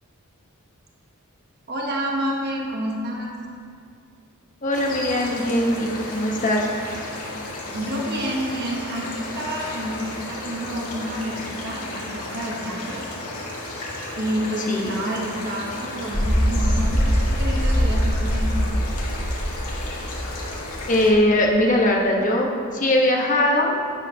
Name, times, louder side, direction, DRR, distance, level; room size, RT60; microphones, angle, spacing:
voice 1, 1.7-3.4 7.7-13.0 14.1-18.5, right 1 dB, 45° right, -1 dB, 1.2 m, -29 dB
voice 2, 4.6-6.7 14.7-15.0 20.9-23.7, left 1 dB, 35° left, 0 dB, 1.1 m, -20 dB
sound 1, 4.7-21.1, left 2 dB, 75° left, 1.9 m, -34 dB
sound 2, 16.1-20.9 21.1-21.2, equal, 10° left, 1.9 m, -22 dB
11.0 x 8.9 x 2.8 m, 2.3 s
head